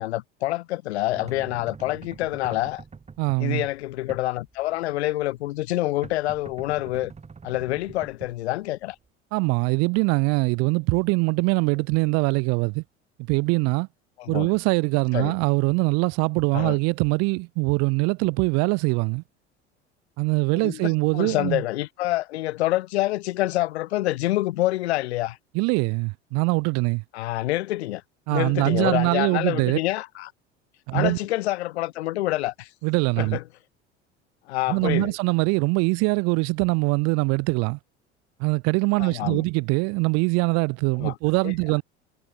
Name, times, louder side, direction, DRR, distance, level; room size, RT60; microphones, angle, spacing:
voice 1, 0.0-2.8 3.4-7.1 7.4-9.0 14.2-14.5 15.1-15.3 16.5-16.8 20.5-25.4 27.1-28.0 28.3-30.3 30.9-32.7 33.2-33.4 34.5-35.1 39.0-39.4 41.0-41.2 41.4-41.5, left 17 dB, 65° left, 1.0 m, -27 dB
sound 1, 1.1-9.1, right 5 dB, 20° right, 2.4 m, -45 dB
voice 2, 3.2-3.6 9.3-12.8 13.3-13.9 14.3-19.2 20.2-21.6 25.5-27.0 28.3-29.8 30.9-31.2 32.8-33.4 34.7-37.8 38.4-41.8, right 30 dB, 45° right, 0.6 m, -23 dB
figure-of-eight pair, 70°, 35 cm